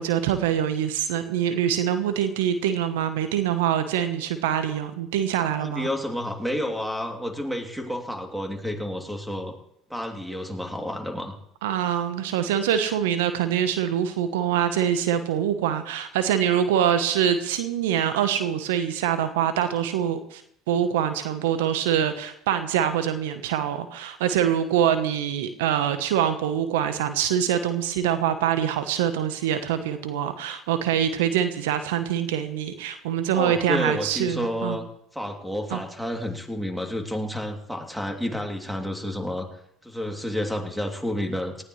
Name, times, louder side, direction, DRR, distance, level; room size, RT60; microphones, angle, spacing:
voice 1, 0.0-5.9 11.6-20.4 20.7-34.8 35.7-35.8, right 9 dB, 80° right, 10 dB, 1.1 m, -24 dB
voice 2, 5.6-9.5 9.9-11.3 33.3-34.9 35.1-39.5 39.8-41.6, left 1 dB, ahead, 2 dB, 2.9 m, -30 dB
18.5 x 14.5 x 3.3 m, 0.74 s
hypercardioid pair, 70°, 0 cm